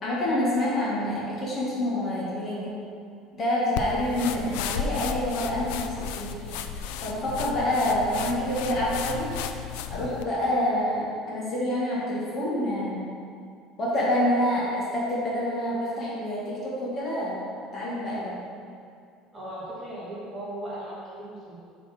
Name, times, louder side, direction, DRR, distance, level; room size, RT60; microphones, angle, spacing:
voice 1, 0.0-2.8 3.4-6.3 7.0-9.3 9.9-13.0 13.8-17.5 17.7-18.4, left 1 dB, 30° left, -6 dB, 1.5 m, -27 dB
sound 1, 3.8-10.3, left 6 dB, 90° left, 0.4 m, -34 dB
voice 2, 19.3-21.6, right 1 dB, 20° right, -7 dB, 1.6 m, -37 dB
5.4 x 4.2 x 5.8 m, 2.4 s
cardioid pair, 160°, 0 cm